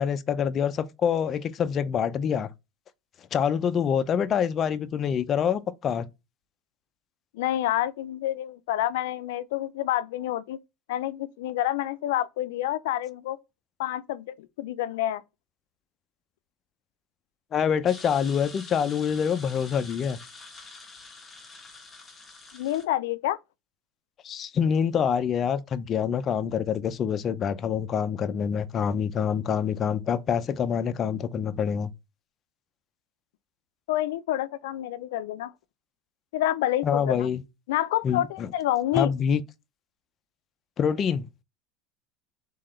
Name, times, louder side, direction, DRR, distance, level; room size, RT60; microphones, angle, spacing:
voice 1, 0.0-2.5 3.3-6.1 17.5-20.2 24.2-31.9 36.8-37.4 38.0-38.5 38.9-39.4 40.8-41.2, left 7 dB, 35° left, 0.5 m, -26 dB
voice 2, 7.3-10.6 10.9-13.4 13.8-15.2 22.5-23.4 33.9-35.5 36.3-37.3 37.7-39.1, left 13 dB, 85° left, 0.4 m, -28 dB
sound 1, 17.9-22.8, left 3 dB, 15° left, 1.4 m, -46 dB
3.8 x 3.8 x 3.2 m
supercardioid pair, 120°, 0 cm